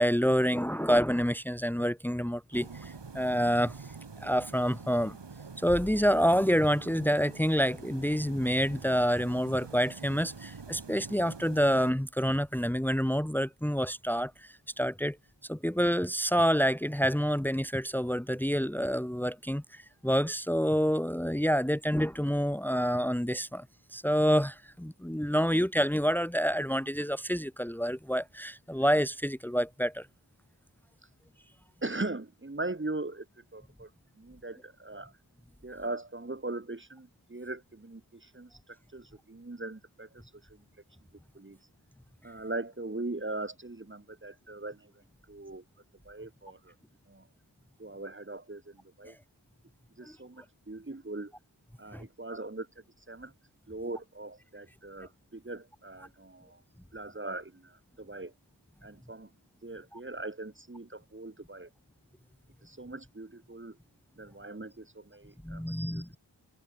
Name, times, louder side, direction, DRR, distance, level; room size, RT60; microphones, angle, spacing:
voice 1, 0.0-3.8 4.2-5.2 5.6-15.2 15.5-23.6 23.9-30.1 50.0-50.1 51.9-52.1 59.9-60.0 65.4-66.2, equal, 5° left, 2.1 m, -28 dB
sound 1, 2.5-11.9, right 4 dB, 60° right, 7.6 m, -46 dB
voice 2, 31.8-33.9 34.2-35.1 35.6-40.6 41.3-41.6 42.2-44.9 45.3-45.6 46.0-46.7 47.1-47.3 47.8-49.2 50.0-51.3 51.8-53.3 53.7-56.6 56.9-58.3 58.8-59.3 59.6-61.7 62.6-63.8 64.1-66.2, right 2 dB, 25° right, 2.8 m, -40 dB
wide cardioid pair, 90°, 48 cm